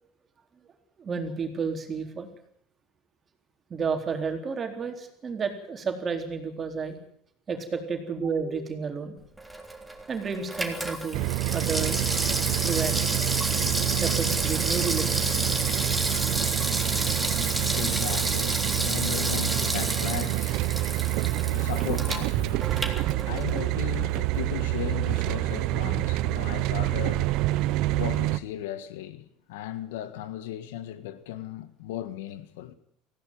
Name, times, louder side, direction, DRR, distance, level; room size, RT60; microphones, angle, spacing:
voice 1, 1.0-2.3 3.7-7.0 7.5-9.2 10.1-12.0 12.6-13.2 14.0-15.4, right 5 dB, 30° right, 4.0 m, -31 dB
Water tap faucet / Sink (filling or washing), 9.4-23.7 24.0-24.1, right 1 dB, 5° right, 3.4 m, -30 dB
sound 1, 11.1-28.4, right 17 dB, 70° right, 0.9 m, -27 dB
voice 2, 17.4-32.7, left 12 dB, 90° left, 1.7 m, -37 dB
18.5 x 16.0 x 9.4 m
supercardioid pair, 105°, 0 cm